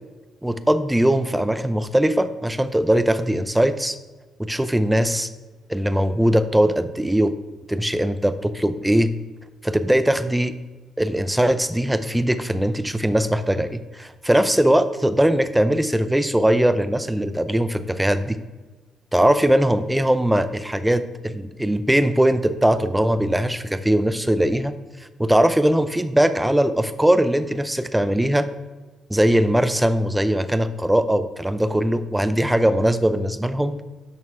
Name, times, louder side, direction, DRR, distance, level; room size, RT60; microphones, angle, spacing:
voice 1, 0.4-4.0 4.4-5.3 5.7-7.3 7.7-9.1 9.6-10.5 11.0-18.4 19.1-24.7 25.2-28.5 29.1-33.7, right 1 dB, 5° right, 11 dB, 0.7 m, -20 dB
11.0 x 6.4 x 3.6 m, 1.3 s
cardioid pair, 90°, 0 cm